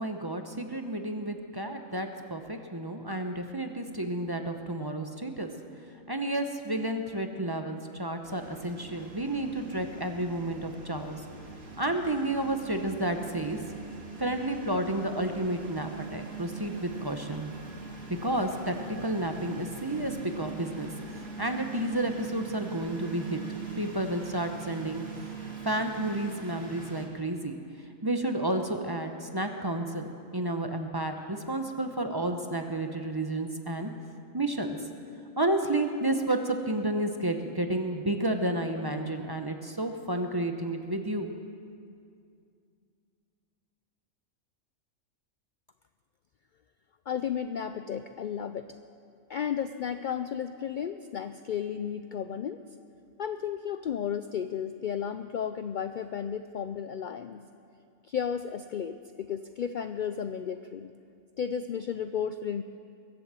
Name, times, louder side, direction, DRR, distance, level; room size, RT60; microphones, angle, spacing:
voice 1, 0.0-5.5 6.1-11.2 11.8-13.6 14.2-17.5 18.1-20.9 21.4-23.4 23.8-25.0 25.6-27.5 28.0-33.9 34.3-34.8 35.4-41.3, right 1 dB, 20° right, 5 dB, 0.7 m, -31 dB
sound 1, 8.2-27.1, right 5 dB, 75° right, 2.4 m, -42 dB
voice 2, 47.1-48.7 49.3-52.6 53.2-57.4 58.1-60.9 61.4-62.6, left 8 dB, 75° left, 9 dB, 0.4 m, -33 dB
22.5 x 7.8 x 7.5 m, 2.3 s
omnidirectional pair, 1.4 m